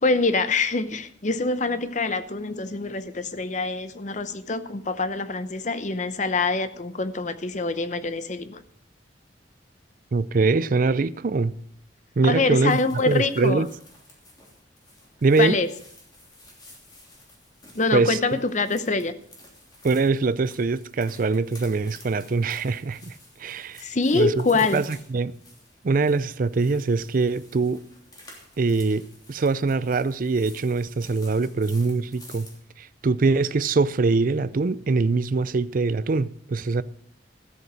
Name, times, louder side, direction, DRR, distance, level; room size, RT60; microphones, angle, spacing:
voice 1, 0.0-8.6 12.2-13.6 15.4-15.7 17.7-19.1 23.8-24.8, left 3 dB, 40° left, 0.7 m, -25 dB
voice 2, 10.1-11.6 12.2-12.8 13.1-13.7 15.2-15.6 17.9-18.2 19.8-23.8 24.1-24.3 24.7-25.3 25.8-27.8 28.6-32.5 32.8-36.8, right 3 dB, 45° right, 0.4 m, -23 dB
sound 1, 12.7-32.6, left 1 dB, 20° left, 3.1 m, -51 dB
13.5 x 8.1 x 6.1 m
head